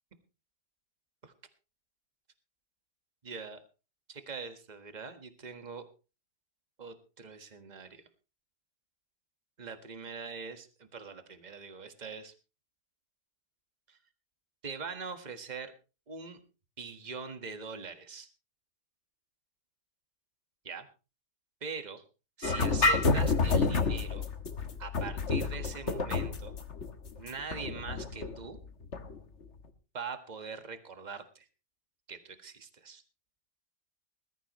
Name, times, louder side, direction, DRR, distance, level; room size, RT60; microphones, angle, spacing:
voice 1, 3.2-3.6 4.1-5.8 6.8-8.0 9.6-12.3 13.9-14.0 14.6-15.7 16.1-16.4 16.8-18.3 20.6-20.9 21.6-22.0 22.4-24.3 24.8-26.6 27.2-28.6 29.9-31.5 32.1-33.0, right 5 dB, 25° right, 8 dB, 1.6 m, -42 dB
sound 1, 22.4-29.2, left 3 dB, 45° left, 1.6 m, -29 dB
20.0 x 14.0 x 3.1 m, 0.33 s
omnidirectional pair, 1.8 m